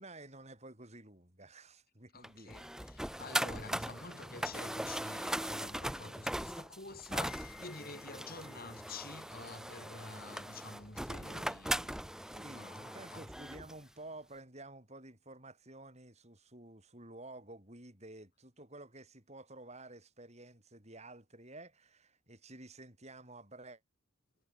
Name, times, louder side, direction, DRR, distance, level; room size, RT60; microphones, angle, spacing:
voice 1, 0.0-2.5 12.3-23.8, right 2 dB, 30° right, 7.5 m, -52 dB
voice 2, 2.1-13.2, left 3 dB, 45° left, 5.8 m, -49 dB
sound 1, 2.2-13.7, right 1 dB, 5° right, 1.1 m, -39 dB
head